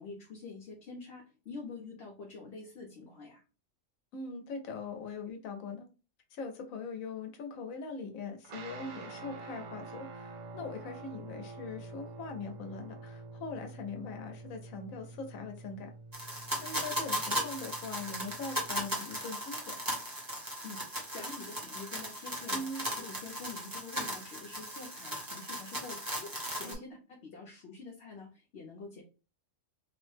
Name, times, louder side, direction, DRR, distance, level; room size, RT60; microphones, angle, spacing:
voice 1, 0.0-3.4 20.6-26.9 27.2-29.0, left 4 dB, 60° left, 0.9 m, -47 dB
voice 2, 4.1-5.9 6.3-15.9 16.6-19.8 22.5-22.9 26.6-26.9, left 4 dB, 90° left, 1.1 m, -41 dB
sound 1, 8.4-19.0, right 3 dB, 85° right, 1.0 m, -47 dB
sound 2, 16.1-26.7, equal, 20° right, 0.8 m, -37 dB
3.0 x 2.1 x 3.1 m
omnidirectional pair, 1.4 m